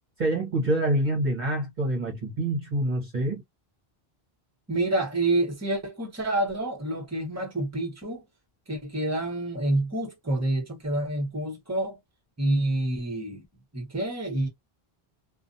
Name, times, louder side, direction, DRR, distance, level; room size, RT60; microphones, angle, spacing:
voice 1, 0.2-3.4, right 1 dB, 50° right, 1.0 m, -26 dB
voice 2, 4.7-8.2 8.7-12.0 12.4-13.4 13.7-14.5, right 2 dB, 15° right, 1.0 m, -28 dB
2.4 x 2.3 x 2.6 m
omnidirectional pair, 1.0 m